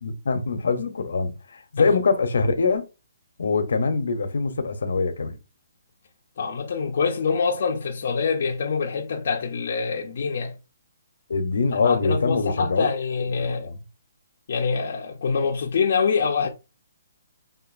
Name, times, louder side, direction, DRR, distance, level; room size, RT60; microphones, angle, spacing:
voice 1, 0.0-2.9 3.4-5.4 11.3-12.9 13.4-13.8, left 4 dB, 75° left, 0.9 m, -24 dB
voice 2, 6.4-10.6 11.7-13.7 14.5-16.5, left 5 dB, 45° left, 0.7 m, -25 dB
5.9 x 2.6 x 2.6 m
hypercardioid pair, 170°, 0 cm